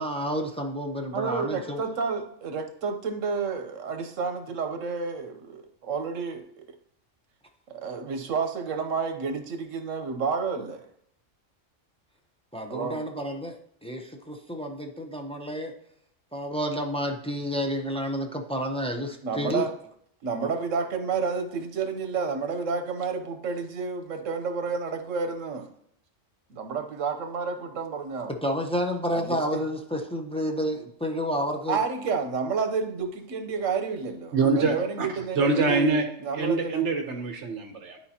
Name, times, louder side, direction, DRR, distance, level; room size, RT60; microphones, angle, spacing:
voice 1, 0.0-1.8 12.5-15.7 16.3-19.6 20.4-20.6 28.4-31.8, equal, 10° left, 2 dB, 0.4 m, -30 dB
voice 2, 1.1-6.6 7.8-10.9 12.7-13.0 19.2-19.7 20.2-25.7 26.5-28.4 29.1-29.6 31.7-36.9, right 5 dB, 80° right, 7 dB, 1.2 m, -30 dB
voice 3, 34.3-35.1 35.4-36.1 36.3-38.0, right 3 dB, 65° right, 5 dB, 1.2 m, -24 dB
12.0 x 4.3 x 2.8 m, 0.69 s
omnidirectional pair, 1.3 m